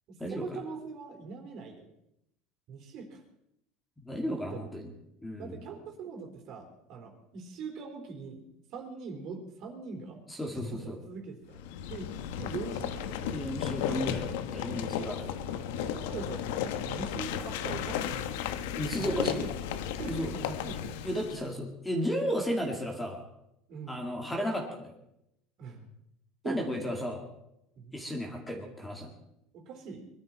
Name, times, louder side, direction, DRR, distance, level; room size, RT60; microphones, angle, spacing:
voice 1, 0.1-1.9 2.7-3.2 4.5-4.6 5.4-10.2 10.5-11.6 11.9-12.1 12.4-13.4 14.9-15.2 15.7-16.5 16.8-18.3 19.0-19.5 20.0-21.1 23.7-24.0 25.6-25.9 26.4-26.8 27.8-28.0 29.5-30.1, right 5 dB, 50° right, 3 dB, 3.8 m, -42 dB
voice 2, 4.0-4.9 5.2-5.6 10.3-11.0 13.3-15.3 18.8-19.4 20.1-20.3 21.0-23.2 23.9-24.9 26.4-27.2 27.9-29.1, equal, 5° left, 1 dB, 2.5 m, -34 dB
sound 1, 11.5-21.5, left 9 dB, 85° left, 1.0 m, -34 dB
22.0 x 13.0 x 4.4 m, 0.82 s
cardioid pair, 140°, 0 cm